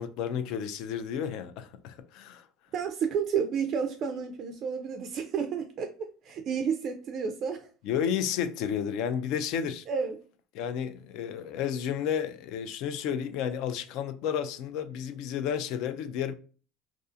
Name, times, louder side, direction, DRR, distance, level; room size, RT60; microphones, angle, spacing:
voice 1, 0.0-2.4 7.8-9.8 10.5-16.3, left 8 dB, 60° left, 0.3 m, -32 dB
voice 2, 2.7-5.9 6.2-7.7 9.9-10.2, right 6 dB, 40° right, 0.3 m, -31 dB
2.4 x 2.3 x 2.5 m
cardioid pair, 140°, 0 cm